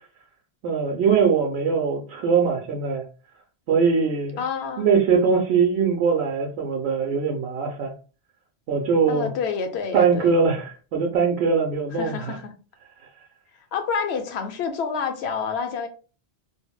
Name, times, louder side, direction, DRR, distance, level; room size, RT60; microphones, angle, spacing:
voice 1, 0.6-3.0 3.7-4.4 4.8-7.9 8.7-9.3 9.9-12.4, right 5 dB, 85° right, 0.8 m, -21 dB
voice 2, 4.4-4.9 9.1-10.4 11.9-12.6 13.7-15.9, left 6 dB, 85° left, 0.8 m, -28 dB
3.6 x 2.0 x 2.2 m
omnidirectional pair, 1.1 m